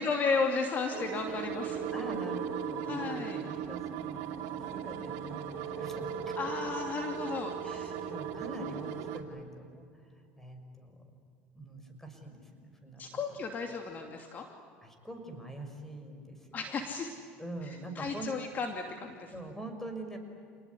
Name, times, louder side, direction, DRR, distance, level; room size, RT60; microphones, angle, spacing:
voice 1, 0.0-1.9 2.8-3.4 6.4-7.9 13.0-14.5 16.5-17.1 17.6-19.3, left 4 dB, 40° left, 4 dB, 2.7 m, -34 dB
sound 1, 0.9-9.2, right 8 dB, 70° right, 2.7 m, -37 dB
voice 2, 1.3-6.5 7.6-9.8 10.4-10.9 11.5-13.2 14.8-16.6 17.4-18.3 19.3-20.2, right 1 dB, 5° left, 5 dB, 6.2 m, -44 dB
29.0 x 20.0 x 9.8 m, 2.4 s
supercardioid pair, 105°, 5 cm